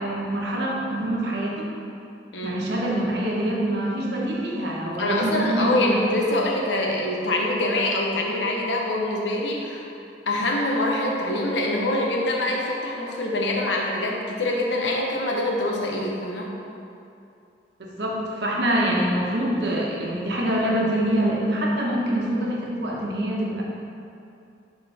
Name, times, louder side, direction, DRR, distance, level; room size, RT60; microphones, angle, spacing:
voice 1, 0.0-1.7 2.4-6.0 17.8-23.6, right 1 dB, 65° right, -3 dB, 1.1 m, -25 dB
voice 2, 5.0-9.9 10.3-16.5, left 1 dB, 85° left, -1 dB, 1.0 m, -25 dB
6.9 x 3.8 x 4.8 m, 2.6 s
head